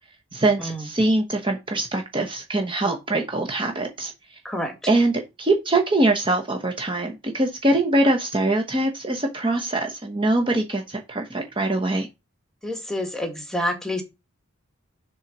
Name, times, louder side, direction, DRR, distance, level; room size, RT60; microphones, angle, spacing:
voice 1, 0.3-4.1 4.9-12.1, right 2 dB, 25° right, 1.1 m, -23 dB
voice 2, 12.6-14.0, left 1 dB, ahead, 1.8 m, -28 dB
7.3 x 4.0 x 6.0 m
head